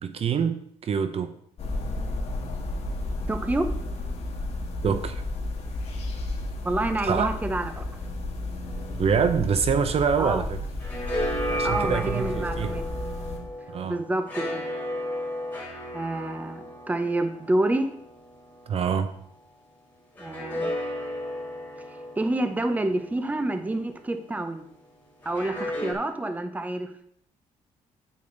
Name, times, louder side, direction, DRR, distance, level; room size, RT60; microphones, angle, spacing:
voice 1, 0.0-1.3 4.8-5.2 7.0-7.3 8.9-10.6 11.5-12.8 13.7-14.0 18.7-19.1, right 6 dB, 50° right, 10 dB, 0.7 m, -25 dB
sound 1, 1.6-13.4, left 2 dB, 55° left, 2.1 m, -32 dB
voice 2, 3.3-3.7 6.6-7.8 10.2-10.4 11.6-12.8 13.8-14.6 15.9-17.9 20.2-20.7 22.2-24.7 25.2-26.9, right 1 dB, 10° right, 8 dB, 0.8 m, -28 dB
sound 2, 8.6-10.3 10.6-19.3 20.1-24.2 25.2-25.9, equal, 15° left, 4.3 m, -34 dB
8.8 x 8.6 x 4.0 m, 0.66 s
cardioid pair, 130°, 13 cm